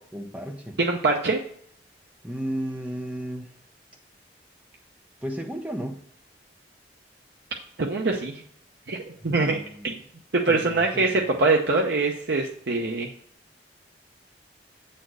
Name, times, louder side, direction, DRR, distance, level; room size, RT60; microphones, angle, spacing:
voice 1, 0.1-0.8 2.2-3.5 5.2-6.0 9.2-9.9 10.5-11.2, equal, 10° right, 3 dB, 0.9 m, -34 dB
voice 2, 0.8-1.4 7.8-8.4 8.9-9.0 9.2-9.9 10.4-13.1, right 3 dB, 70° right, 0 dB, 0.8 m, -23 dB
8.1 x 4.4 x 6.2 m, 0.63 s
head